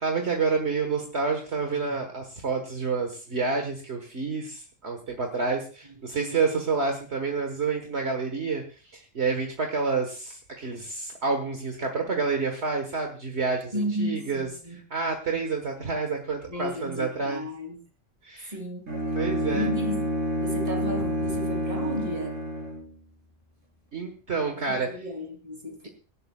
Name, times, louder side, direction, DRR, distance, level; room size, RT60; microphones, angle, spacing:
voice 1, 0.0-8.6 8.9-13.7 14.0-14.5 14.9-17.4 18.2-18.5 19.2-19.7 23.9-24.9, right 4 dB, 60° right, 3 dB, 1.8 m, -28 dB
voice 2, 6.2-6.6 13.7-14.8 16.5-17.8 18.5-18.9 19.5-20.1 20.4-22.4 24.5-25.9, equal, 30° right, 2 dB, 3.4 m, -33 dB
Bowed string instrument, 18.9-22.9, equal, 85° right, 4.1 m, -28 dB
25.0 x 11.5 x 2.4 m, 0.36 s
omnidirectional pair, 1.3 m